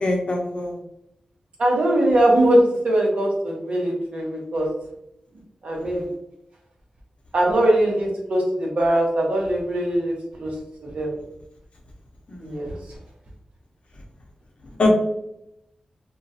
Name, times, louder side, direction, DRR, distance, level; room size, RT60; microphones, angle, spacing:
voice 1, 0.0-0.7 5.8-6.1 12.3-12.6 14.8-14.9, left 2 dB, 50° left, 0 dB, 0.6 m, -24 dB
voice 2, 1.6-4.7 5.6-6.1 7.3-10.5 10.8-11.2 12.4-12.7, right 1 dB, 60° right, -1 dB, 0.8 m, -21 dB
2.9 x 2.3 x 2.7 m, 0.80 s
wide cardioid pair, 145°, 2 cm